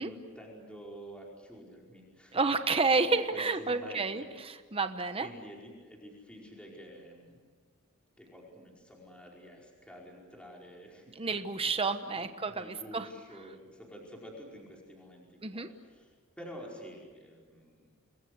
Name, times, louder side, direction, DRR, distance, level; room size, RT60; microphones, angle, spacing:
voice 1, 0.0-2.4 3.1-4.3 5.2-7.4 8.2-11.3 11.6-16.1 16.4-17.9, equal, 5° left, -2 dB, 5.0 m, -49 dB
voice 2, 2.3-5.3 11.1-13.1 15.4-15.7, right 4 dB, 25° right, 9 dB, 1.1 m, -30 dB
28.5 x 21.5 x 8.0 m, 1.5 s
head